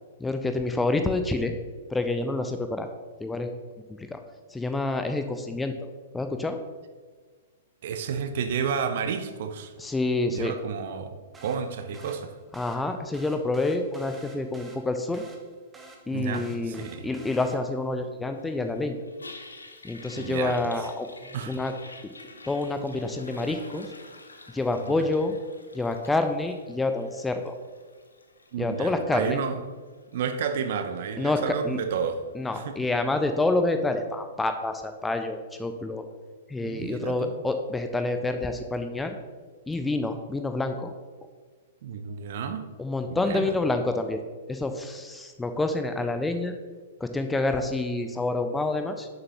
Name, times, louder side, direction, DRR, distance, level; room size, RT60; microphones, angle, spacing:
voice 1, 0.2-1.5 1.9-2.9 3.2-3.5 3.9-4.2 4.5-5.7 6.1-6.6 9.8-10.5 12.5-15.2 16.1-19.0 19.8-21.1 21.5-21.7 22.5-23.9 24.5-25.3 25.7-27.5 28.6-29.4 31.2-31.8 32.3-36.0 36.5-39.2 39.7-40.9 42.8-44.2 44.5-46.5 47.0-49.1, left 2 dB, 10° left, 7 dB, 0.5 m, -28 dB
voice 2, 7.8-9.7 10.3-12.3 16.1-17.1 20.2-20.6 21.3-21.5 24.8-25.1 28.5-29.6 30.1-32.2 32.5-32.7 36.6-37.3 41.8-42.6 43.1-43.5, right 6 dB, 50° right, 8 dB, 0.7 m, -31 dB
sound 1, 11.3-17.9, right 2 dB, 10° right, 0.9 m, -50 dB
Toilet flush, 18.4-33.6, left 2 dB, 75° left, 0.9 m, -49 dB
10.5 x 6.7 x 2.9 m, 1.5 s
figure-of-eight pair, 110°, 0 cm